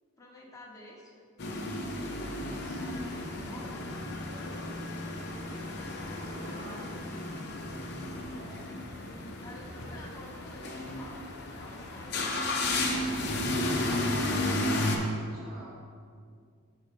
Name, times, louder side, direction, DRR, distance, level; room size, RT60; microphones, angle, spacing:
voice 1, 0.2-1.2 1.9-5.3 5.6-6.8 8.3-12.9, left 2 dB, 15° left, -2 dB, 0.9 m, -51 dB
sound 1, 1.4-15.0, left 1 dB, 50° left, 0.8 m, -33 dB
sound 2, 2.1-14.6, left 1 dB, 85° left, 0.6 m, -46 dB
voice 2, 2.4-2.8 3.6-3.8 6.1-7.0 8.1-8.6 13.0-13.6 14.3-15.7, right 1 dB, 75° right, -9 dB, 1.6 m, -49 dB
6.3 x 4.6 x 5.3 m, 2.2 s
head